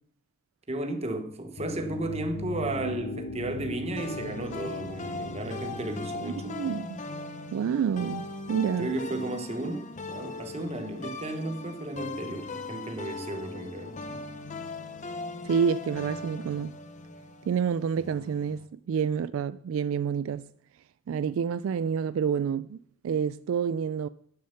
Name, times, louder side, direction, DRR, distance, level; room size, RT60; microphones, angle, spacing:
voice 1, 0.7-6.6 8.8-14.2, right 2 dB, 30° right, 1.1 m, -34 dB
sound 1, 1.6-6.6, left 3 dB, 75° left, 0.9 m, -39 dB
sound 2, 4.0-18.7, left 3 dB, 35° left, 0.7 m, -39 dB
voice 2, 6.2-7.0 7.5-8.9 15.4-16.8 17.5-20.5 21.1-24.1, right 7 dB, 70° right, 0.3 m, -28 dB
11.0 x 6.4 x 5.7 m
head